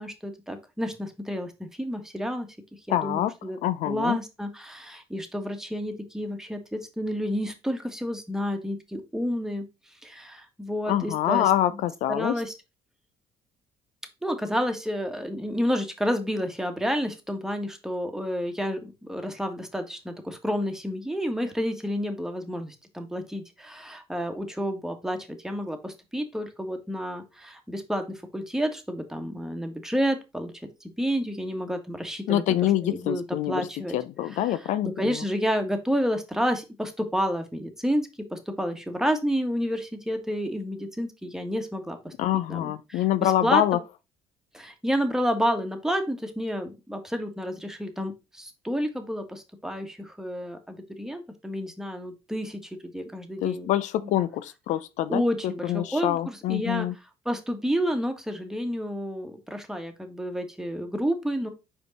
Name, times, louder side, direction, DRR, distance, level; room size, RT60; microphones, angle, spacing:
voice 1, 0.0-2.5 2.9-3.6 3.9-9.7 10.0-11.8 12.1-12.5 14.2-30.5 31.0-34.0 34.3-42.1 42.5-43.6 44.5-53.7 54.0-54.1 55.1-56.9 57.2-61.5, equal, 5° right, 1.6 m, -30 dB
voice 2, 2.9-3.3 3.6-4.2 10.9-12.4 32.3-33.7 33.9-35.1 42.2-43.8 53.4-55.2 55.6-56.9, left 12 dB, 65° left, 0.4 m, -25 dB
5.2 x 4.6 x 4.1 m
hypercardioid pair, 60°, 13 cm